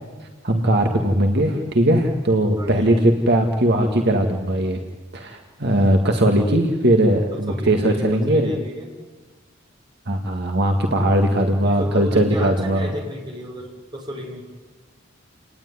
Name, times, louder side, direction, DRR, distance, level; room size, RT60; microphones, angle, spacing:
voice 1, 0.4-4.8 5.1-8.5 10.1-12.9, right 1 dB, 55° right, 3 dB, 2.0 m, -19 dB
voice 2, 2.6-3.0 7.3-8.9 11.6-14.5, equal, 25° right, 0 dB, 6.3 m, -33 dB
30.0 x 19.5 x 9.7 m, 1.3 s
head